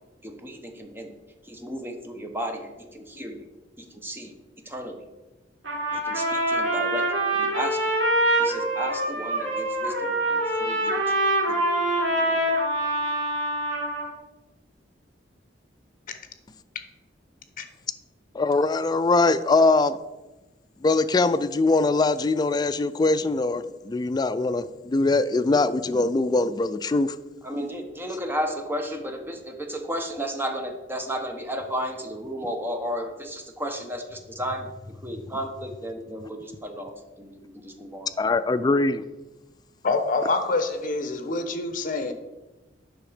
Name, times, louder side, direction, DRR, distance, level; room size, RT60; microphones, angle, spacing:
voice 1, 0.2-1.1 1.4-3.4 3.8-5.0 5.9-7.8 8.4-11.0 11.5-11.7 12.1-12.6 27.4-34.7 35.0-38.1, equal, 10° right, 4 dB, 0.9 m, -34 dB
Trumpet, 5.6-14.1, right 1 dB, 85° right, 3.3 m, -25 dB
voice 2, 18.3-20.0 20.8-27.2 38.2-39.0, left 3 dB, 20° left, 12 dB, 0.3 m, -22 dB
voice 3, 39.8-42.1, left 3 dB, 50° left, 8 dB, 0.9 m, -26 dB
7.8 x 5.9 x 5.0 m, 1.1 s
head